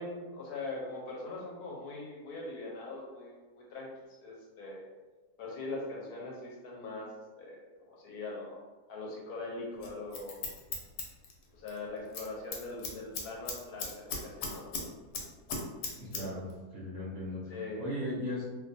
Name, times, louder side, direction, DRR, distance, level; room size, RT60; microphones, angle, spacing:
voice 1, 0.0-3.9 4.2-4.9 5.4-8.6 8.9-10.5 11.5-14.7 17.5-17.8, left 2 dB, 70° left, -2 dB, 1.0 m, -41 dB
Scissors, 9.8-11.8 12.1-12.3 12.5-14.9 15.1-16.2 16.5-16.6, left 4 dB, 90° left, 1.2 m, -37 dB
voice 2, 16.0-18.4, left 1 dB, 65° right, -7 dB, 0.7 m, -37 dB
2.6 x 2.2 x 2.6 m, 1.3 s
omnidirectional pair, 1.8 m